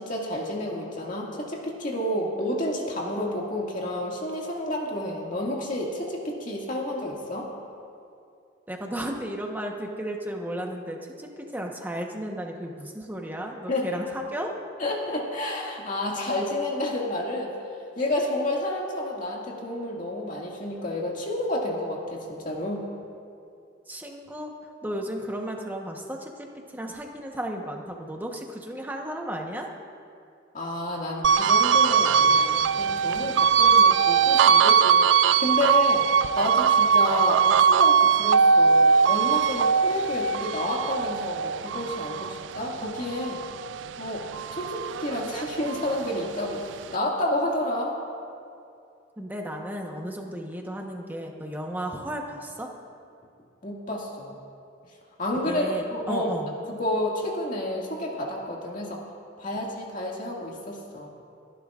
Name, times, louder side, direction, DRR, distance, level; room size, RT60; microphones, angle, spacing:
voice 1, 0.0-7.5 13.7-14.0 14.8-17.5 18.0-22.9 30.5-36.1 36.4-43.4 44.0-48.0 53.6-54.4 55.2-56.3 56.7-59.1 59.4-61.1, left 1 dB, 45° left, -2 dB, 2.1 m, -30 dB
voice 2, 8.7-14.5 23.9-24.5 24.8-26.5 26.7-29.7 49.2-52.7 55.5-56.5, right 1 dB, 10° right, 1 dB, 1.1 m, -34 dB
sound 1, 31.2-43.9 44.3-46.0, right 6 dB, 75° right, 0.3 m, -21 dB
29.0 x 11.0 x 2.5 m, 2.5 s
head